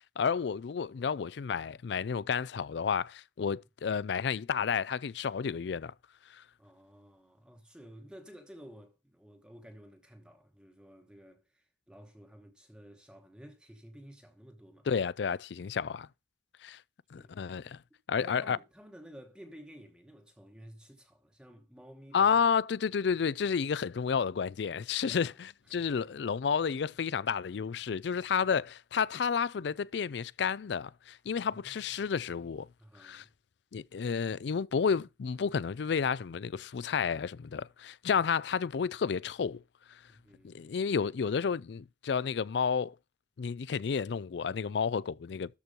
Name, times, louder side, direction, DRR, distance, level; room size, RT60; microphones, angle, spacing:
voice 1, 0.2-5.9 6.3-6.4 14.9-16.1 16.6-16.8 17.1-17.8 18.1-18.6 22.1-25.3 25.7-32.7 33.0-33.2 33.7-39.6 40.4-42.9 43.4-45.6, left 6 dB, 70° left, 0.4 m, -31 dB
voice 2, 6.6-14.9 15.6-15.8 17.2-17.4 18.2-22.3 25.0-25.4 25.6-26.1 31.3-32.1 32.8-33.3 40.1-40.7, equal, 5° right, 1.1 m, -53 dB
13.0 x 4.5 x 5.3 m
head